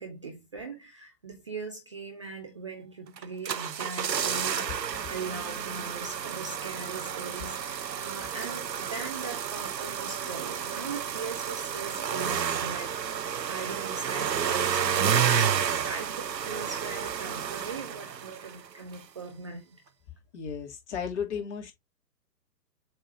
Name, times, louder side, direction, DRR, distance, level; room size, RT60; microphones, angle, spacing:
voice 1, 0.0-19.8, right 4 dB, 20° right, 0.5 m, -40 dB
sound 1, 3.2-18.7 18.9-19.0, right 8 dB, 85° right, 0.7 m, -31 dB
voice 2, 20.3-21.7, left 7 dB, 45° left, 2.9 m, -34 dB
7.6 x 3.4 x 4.2 m
figure-of-eight pair, 125°, 50 cm